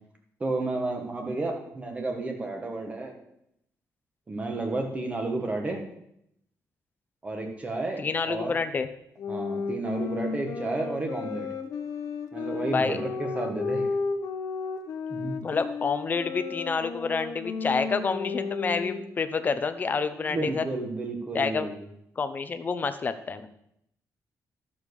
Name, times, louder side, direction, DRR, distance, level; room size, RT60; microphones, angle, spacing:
voice 1, 0.4-3.1 4.3-5.8 7.2-8.6 9.3-11.5 12.3-13.9 15.1-15.4 20.1-21.8, right 2 dB, 20° right, 2 dB, 1.7 m, -32 dB
voice 2, 8.0-8.9 12.7-13.0 15.4-20.6 21.3-21.7 22.2-23.5, left 5 dB, 30° left, 10 dB, 0.7 m, -28 dB
sound 1, 9.2-19.2, left 4 dB, 70° left, 1.1 m, -33 dB
12.0 x 7.1 x 4.9 m, 0.76 s
wide cardioid pair, 160°, 6 cm